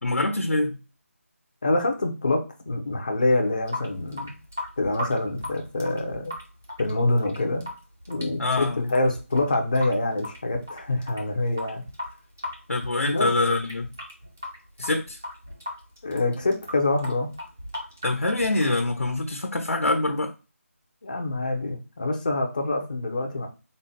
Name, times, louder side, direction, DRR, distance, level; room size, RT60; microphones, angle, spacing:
voice 1, 0.0-0.8 8.4-8.9 12.7-13.9 14.8-15.2 18.0-20.3, left 2 dB, 70° left, 3 dB, 0.8 m, -25 dB
voice 2, 1.6-4.4 4.8-6.3 6.8-7.7 8.1-11.8 13.1-13.3 16.0-17.3 21.0-23.5, left 2 dB, 30° left, 2 dB, 0.7 m, -26 dB
Water tap faucet / Sink (filling or washing) / Drip, 3.4-19.4, left 1 dB, 10° right, 0.3 m, -38 dB
3.7 x 2.1 x 4.1 m, 0.31 s
figure-of-eight pair, 175°, 8 cm